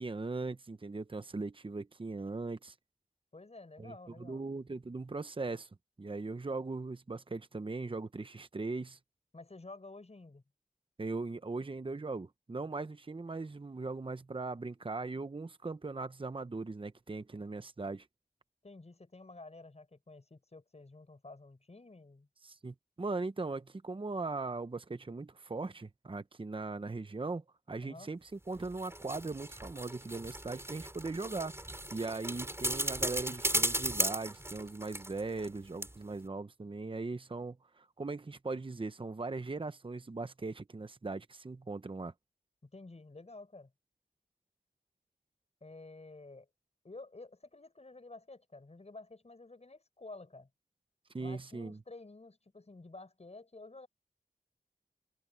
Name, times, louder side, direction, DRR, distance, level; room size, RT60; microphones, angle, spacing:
voice 1, 0.0-2.7 3.8-5.7 6.0-9.0 11.0-18.1 22.4-31.6 31.9-42.1 51.1-51.8, right 3 dB, 35° right, 0.9 m, -39 dB
voice 2, 3.3-4.4 9.3-10.4 18.6-22.3 27.8-28.1 42.6-43.7 45.6-46.5 46.8-50.5 51.2-53.9, left 2 dB, 45° left, 6.8 m, -51 dB
sound 1, 28.5-35.5 35.8-35.9, right 1 dB, 15° right, 4.0 m, -36 dB
wide cardioid pair, 70°, 15 cm